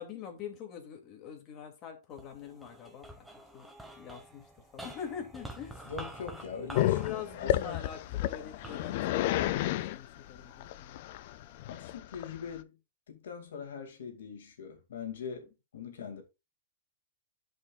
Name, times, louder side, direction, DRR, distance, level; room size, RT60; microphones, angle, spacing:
voice 1, 0.0-3.3 3.5-3.7 4.0-5.9 6.8-11.0, left 9 dB, 35° left, 2.4 m, -43 dB
sound 1, 2.1-10.6 11.2-11.9, right 1 dB, 5° right, 1.2 m, -49 dB
voice 2, 5.9-7.8 11.7-12.8 13.1-16.2, left 6 dB, 80° left, 2.2 m, -42 dB
Growling, 6.7-12.6, left 14 dB, 55° left, 0.4 m, -31 dB
11.5 x 5.2 x 2.4 m
hypercardioid pair, 130°, 0 cm